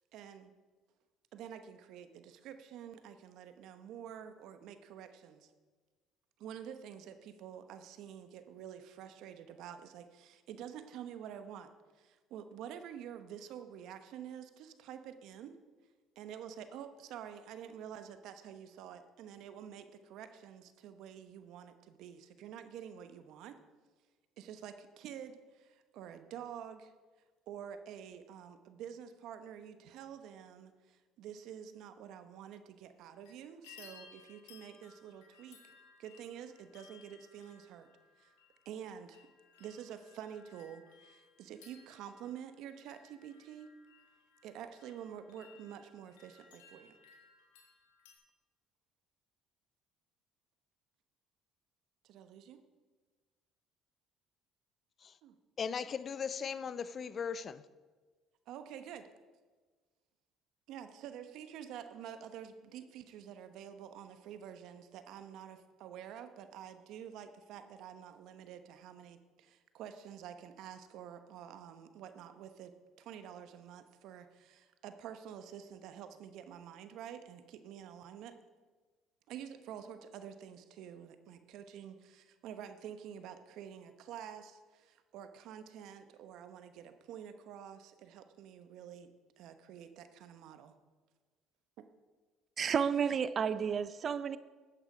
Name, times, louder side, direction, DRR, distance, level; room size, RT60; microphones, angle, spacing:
voice 1, 0.1-0.5 1.3-5.5 6.4-11.7 11.9-15.6 16.2-23.6 24.4-26.9 27.5-35.6 36.0-37.9 38.2-38.3 38.6-39.3 39.6-43.7 44.4-47.0 52.0-52.6 55.2-55.4 58.5-59.1 60.7-78.4 79.3-89.1 89.4-90.7, right 9 dB, 70° right, 1.0 m, -48 dB
sound 1, 33.0-33.3 33.6-48.1, left 6 dB, 90° left, 2.0 m, -61 dB
voice 2, 55.6-57.6, left 6 dB, 45° left, 0.6 m, -38 dB
voice 3, 92.6-94.4, right 7 dB, 45° right, 0.5 m, -31 dB
13.5 x 8.9 x 5.0 m
supercardioid pair, 70°, 0 cm